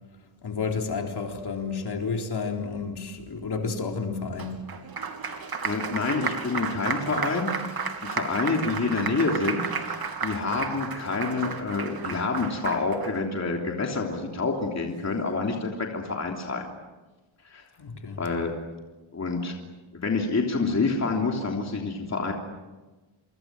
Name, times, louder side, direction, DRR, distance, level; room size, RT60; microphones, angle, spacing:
voice 1, 0.4-4.6 17.8-18.2, left 5 dB, 50° left, 3 dB, 4.0 m, -31 dB
Applause, 4.4-13.1, right 5 dB, 45° right, 3.1 m, -32 dB
voice 2, 5.6-16.7 17.4-17.6 18.2-18.5 19.1-19.5 19.9-22.3, left 3 dB, 35° left, 1 dB, 3.3 m, -28 dB
27.5 x 25.0 x 7.8 m, 1.2 s
wide cardioid pair, 145°, 49 cm